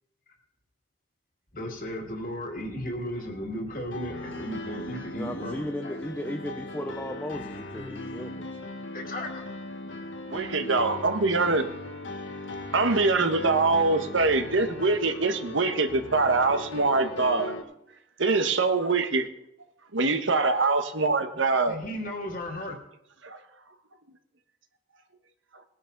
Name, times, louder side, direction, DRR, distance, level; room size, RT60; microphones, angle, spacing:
voice 1, 1.5-6.0 8.9-9.5 21.3-22.8, equal, 45° left, 2.3 m, -35 dB
Piano, 3.9-17.6, left 1 dB, 80° left, 1.6 m, -38 dB
voice 2, 5.1-8.6, left 1 dB, 10° left, 0.6 m, -35 dB
voice 3, 10.3-11.7 12.7-17.6 18.2-19.3 19.9-21.8 23.2-23.4, right 3 dB, 90° right, 1.4 m, -24 dB
19.5 x 10.5 x 4.0 m
head